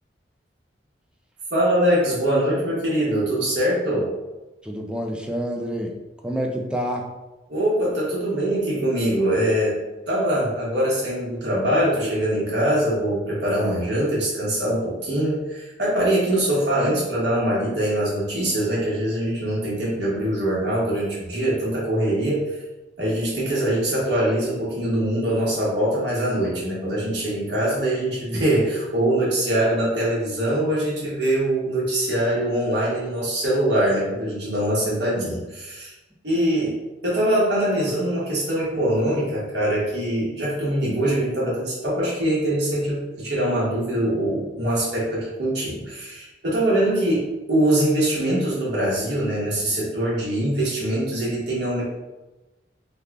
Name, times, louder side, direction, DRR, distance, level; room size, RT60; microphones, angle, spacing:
voice 1, 1.5-4.1 7.5-9.8 10.1-22.4 23.0-35.9 36.2-36.8 37.0-51.8, right 1 dB, 65° right, -7 dB, 1.4 m, -23 dB
voice 2, 4.6-6.0 6.2-7.1, equal, 5° right, 1 dB, 0.3 m, -28 dB
3.3 x 2.3 x 3.5 m, 1.1 s
head